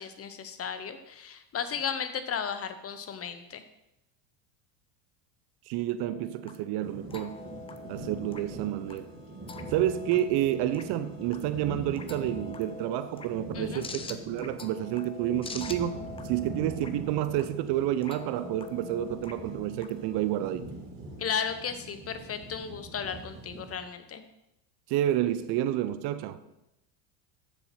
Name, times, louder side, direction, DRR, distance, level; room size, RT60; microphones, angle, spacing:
voice 1, 0.0-3.6 13.5-13.8 21.2-24.2, left 7 dB, 30° left, 10 dB, 0.9 m, -35 dB
voice 2, 5.7-7.4 7.9-9.1 9.7-20.7 24.9-26.4, right 12 dB, 55° right, 12 dB, 0.8 m, -29 dB
sound 1, 6.0-20.3, left 3 dB, 15° left, 0.4 m, -46 dB
sound 2, 6.8-23.8, right 1 dB, 25° right, 2.9 m, -43 dB
7.0 x 7.0 x 5.9 m, 0.87 s
supercardioid pair, 110°, 49 cm